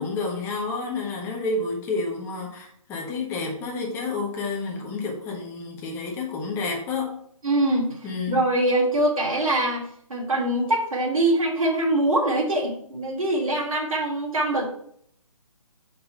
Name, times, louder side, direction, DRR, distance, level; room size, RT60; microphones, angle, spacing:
voice 1, 0.0-7.2 8.0-8.4, left 3 dB, 15° left, 1.1 m, -30 dB
voice 2, 7.4-8.0 8.3-9.8 10.1-14.7, right 1 dB, 75° right, 2.5 m, -23 dB
5.3 x 4.6 x 5.4 m
figure-of-eight pair, 150°, 18 cm